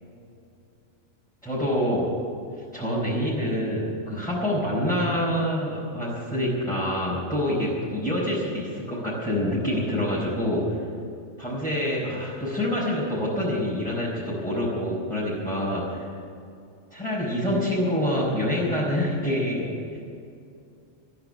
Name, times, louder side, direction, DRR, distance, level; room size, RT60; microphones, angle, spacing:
voice 1, 1.4-2.1 2.7-10.8 11.4-16.1 16.9-19.7, left 1 dB, ahead, -9 dB, 4.7 m, -26 dB
14.5 x 10.5 x 8.8 m, 2.5 s
omnidirectional pair, 1.4 m